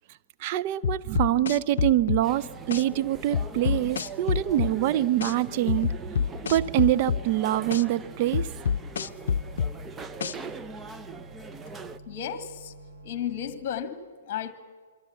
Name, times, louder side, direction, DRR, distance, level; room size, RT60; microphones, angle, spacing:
voice 1, 0.4-6.1 6.4-8.5, right 13 dB, 40° right, 0.7 m, -25 dB
sound 1, 0.8-2.2 2.7-2.8 3.3-4.7 5.2-5.3 5.7-7.2 7.7-7.8 8.3-9.7 10.2-10.3, left 7 dB, 60° left, 0.6 m, -26 dB
sound 2, 1.8-13.5, right 2 dB, 90° right, 7.8 m, -48 dB
sound 3, 2.2-12.0, right 4 dB, 15° right, 0.9 m, -42 dB
voice 2, 12.1-12.7 13.0-14.5, left 9 dB, 35° left, 1.7 m, -33 dB
27.5 x 23.5 x 7.0 m
figure-of-eight pair, 110°, 0 cm